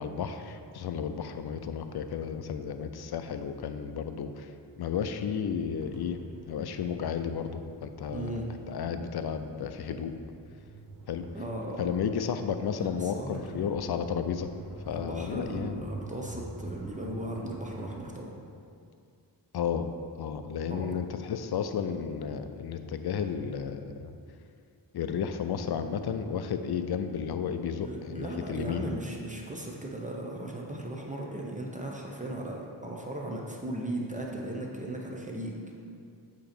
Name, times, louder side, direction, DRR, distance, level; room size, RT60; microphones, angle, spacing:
voice 1, 0.0-4.5 4.8-8.4 8.7-10.1 11.1-11.2 11.8-14.5 14.9-15.8 19.5-19.9 20.2-24.1 24.9-29.0, left 7 dB, 60° left, 9 dB, 0.5 m, -33 dB
sound 1, 5.8-18.2, right 2 dB, 50° right, 0.9 m, -47 dB
voice 2, 8.1-8.5 11.3-11.9 12.8-13.6 14.9-18.3 20.7-21.0 27.8-35.6, right 1 dB, 15° right, -1 dB, 0.8 m, -37 dB
7.7 x 3.0 x 4.3 m, 2.4 s
cardioid pair, 60°, 43 cm